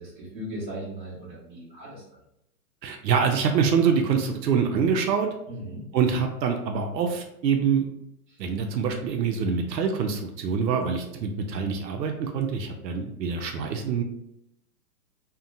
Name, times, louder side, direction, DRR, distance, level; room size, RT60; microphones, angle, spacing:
voice 1, 0.0-2.0 5.5-5.8, right 1 dB, 30° right, -7 dB, 1.0 m, -37 dB
voice 2, 2.8-5.3 5.9-7.8 8.4-14.0, right 6 dB, 85° right, 4 dB, 0.6 m, -25 dB
2.7 x 2.1 x 2.5 m, 0.80 s
hypercardioid pair, 165°, 49 cm